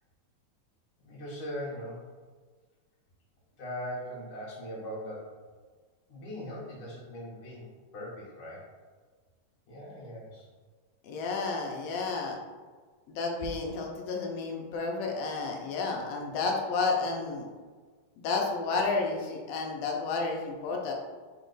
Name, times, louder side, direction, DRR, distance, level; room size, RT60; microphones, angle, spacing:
voice 1, 1.0-2.0 3.6-5.3 6.1-8.6 9.7-10.5, equal, 60° left, -4 dB, 1.6 m, -40 dB
voice 2, 11.0-12.4 13.1-17.5 18.2-20.9, left 4 dB, 75° left, 0 dB, 1.6 m, -31 dB
4.5 x 3.0 x 3.9 m, 1.4 s
omnidirectional pair, 3.3 m